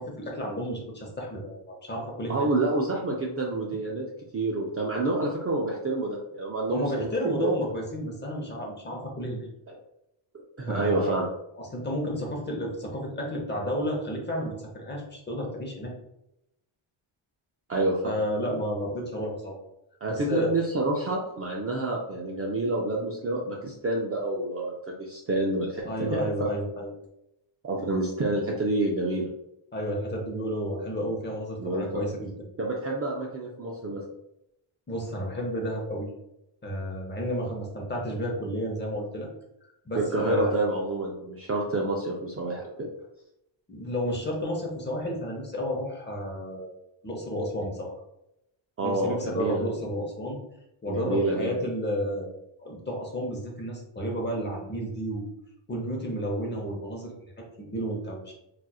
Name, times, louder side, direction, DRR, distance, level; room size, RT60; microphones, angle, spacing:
voice 1, 0.0-2.5 6.7-9.5 10.7-11.1 11.6-15.9 18.0-19.6 20.1-20.5 25.9-26.9 29.7-32.3 33.6-33.8 34.9-36.1 36.6-39.3 39.9-40.6 43.7-46.7 47.0-47.9 48.8-50.4 50.8-52.3 52.6-55.3 55.7-58.3, equal, 20° left, -1 dB, 0.7 m, -31 dB
voice 2, 2.3-4.1 4.3-7.5 10.6-11.3 17.7-18.1 20.0-26.5 27.6-29.3 31.6-31.9 32.6-34.0 39.9-42.9 48.8-49.6 50.9-51.6, right 2 dB, 30° right, -2 dB, 0.4 m, -28 dB
4.2 x 2.4 x 2.3 m, 0.84 s
wide cardioid pair, 145°, 49 cm